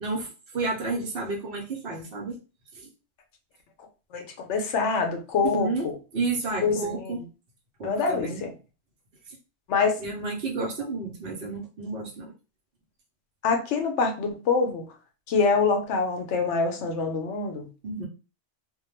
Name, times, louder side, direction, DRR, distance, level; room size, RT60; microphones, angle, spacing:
voice 1, 0.5-2.4 2.7-2.9 5.4-5.9 6.1-7.2 7.8-8.5 10.0-12.3 17.8-18.1, right 3 dB, 55° right, -1 dB, 0.8 m, -31 dB
voice 2, 4.1-5.9 6.6-7.2 7.8-8.5 9.7-10.0 13.4-14.9 15.3-17.7, left 4 dB, 75° left, 5 dB, 0.9 m, -25 dB
2.2 x 2.2 x 3.1 m, 0.33 s
omnidirectional pair, 1.2 m